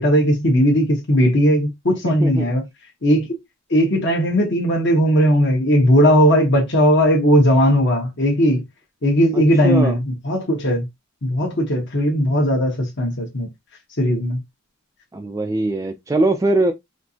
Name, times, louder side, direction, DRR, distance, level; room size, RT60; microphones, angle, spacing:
voice 1, 0.0-2.6 3.0-3.3 3.7-8.6 9.0-10.9 11.2-13.5 14.0-14.4, equal, 55° left, 1.1 m, -17 dB
voice 2, 2.0-2.5 9.3-10.0 15.1-16.7, right 2 dB, 15° right, 0.3 m, -21 dB
4.3 x 2.5 x 2.8 m
head